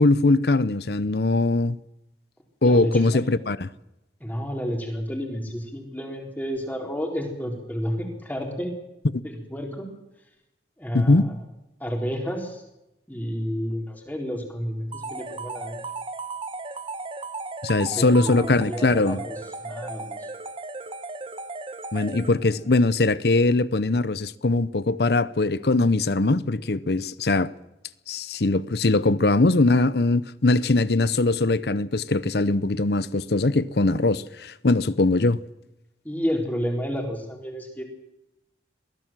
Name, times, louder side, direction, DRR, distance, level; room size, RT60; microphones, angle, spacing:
voice 1, 0.0-1.8 2.6-3.7 10.9-11.3 17.6-19.2 21.9-27.5 28.1-35.4, left 2 dB, 65° left, 0.8 m, -21 dB
voice 2, 2.6-3.2 4.2-8.7 9.2-9.9 10.8-11.4 11.8-12.6 13.1-15.8 17.9-20.3 36.0-37.8, equal, 10° left, 4.1 m, -30 dB
sound 1, 14.9-22.7, right 3 dB, 30° right, 1.2 m, -36 dB
22.5 x 15.5 x 7.5 m
head